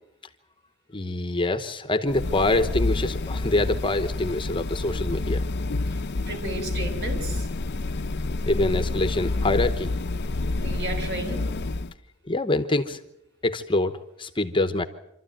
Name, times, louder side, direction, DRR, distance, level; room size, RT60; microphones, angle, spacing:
voice 1, 0.9-5.4 8.5-9.9 12.3-13.0 13.4-14.8, left 2 dB, 25° left, 10 dB, 1.0 m, -25 dB
sound 1, 2.1-11.9, left 2 dB, 50° left, 0.7 m, -28 dB
voice 2, 5.9-7.5 10.5-11.4, right 2 dB, 50° right, 4 dB, 5.2 m, -33 dB
27.0 x 13.0 x 9.0 m, 0.85 s
head